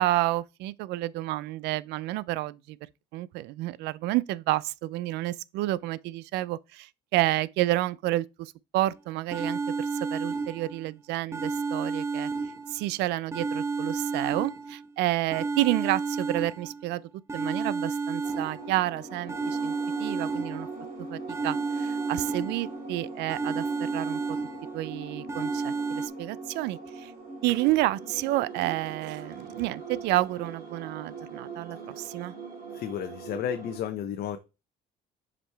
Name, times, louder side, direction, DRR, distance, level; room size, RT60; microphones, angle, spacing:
voice 1, 0.0-2.8 3.1-9.6 10.1-12.3 12.7-17.0 17.3-20.7 21.1-24.4 24.7-27.1 27.4-32.3, right 17 dB, 85° right, 0.4 m, -30 dB
sound 1, 9.3-10.9 11.3-12.9 13.3-14.9 15.3-16.9 17.3-18.9 19.3-20.9 21.3-22.9 23.3-24.9 25.3-26.1, right 4 dB, 15° right, 0.9 m, -31 dB
sound 2, 18.2-33.8, right 3 dB, 55° right, 3.2 m, -41 dB
voice 2, 32.7-34.4, left 9 dB, 65° left, 0.7 m, -32 dB
7.4 x 5.0 x 3.3 m
cardioid pair, 110°, 17 cm